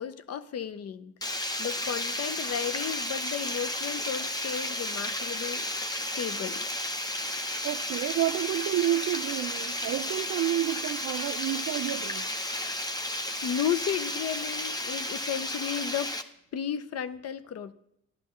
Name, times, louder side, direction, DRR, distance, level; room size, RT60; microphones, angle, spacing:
voice 1, 0.0-5.7 6.1-6.7 13.4-16.1 16.5-17.7, left 8 dB, 55° left, 0.6 m, -33 dB
Water, 1.2-16.2, left 1 dB, 15° left, 0.7 m, -33 dB
voice 2, 7.6-12.3, right 13 dB, 60° right, 0.5 m, -30 dB
13.0 x 10.5 x 3.1 m
cardioid pair, 90°, 30 cm